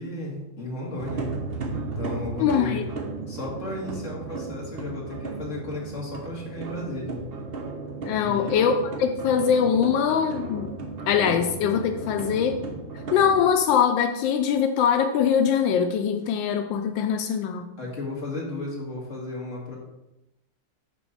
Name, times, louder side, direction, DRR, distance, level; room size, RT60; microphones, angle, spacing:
voice 1, 0.0-1.3 1.7-2.8 3.3-7.2 8.1-8.7 17.8-19.8, left 2 dB, 40° left, -3 dB, 2.2 m, -34 dB
sound 1, 1.0-13.5, right 4 dB, 45° right, 0.8 m, -35 dB
voice 2, 2.4-2.9 8.0-10.7 11.1-12.6 13.1-17.7, left 7 dB, 90° left, 6 dB, 1.3 m, -22 dB
8.5 x 3.1 x 6.3 m, 0.92 s
omnidirectional pair, 2.0 m